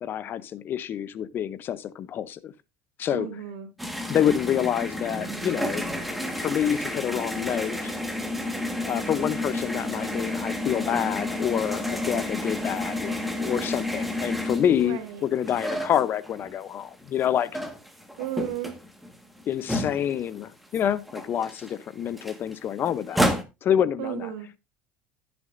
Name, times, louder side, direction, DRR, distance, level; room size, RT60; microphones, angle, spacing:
voice 1, 0.0-2.5 3.0-3.3 4.1-5.9 6.3-7.9 8.8-17.5 19.5-23.4 23.6-24.3, left 9 dB, 40° left, 0.7 m, -27 dB
voice 2, 3.1-3.7 14.8-15.2 18.2-18.7 24.0-24.5, right 11 dB, 80° right, 2.7 m, -34 dB
sound 1, 3.8-16.6 17.0-20.4 20.7-20.8 21.1-23.4, left 1 dB, ahead, 1.6 m, -31 dB
14.5 x 6.9 x 2.6 m
supercardioid pair, 120°, 5 cm